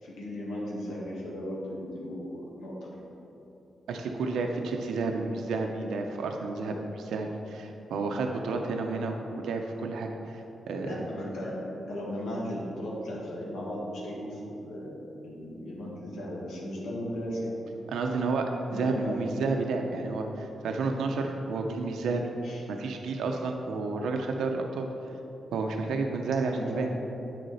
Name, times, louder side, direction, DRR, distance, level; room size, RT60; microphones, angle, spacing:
voice 1, 0.0-2.9 10.8-17.5 18.7-19.2 22.4-22.6 26.5-26.9, equal, 85° left, -3 dB, 1.7 m, -36 dB
voice 2, 3.9-11.0 17.9-22.3 22.7-24.9 25.5-26.9, right 3 dB, 90° right, 3 dB, 0.6 m, -31 dB
8.5 x 6.5 x 4.1 m, 2.9 s
cardioid pair, 70°, 0 cm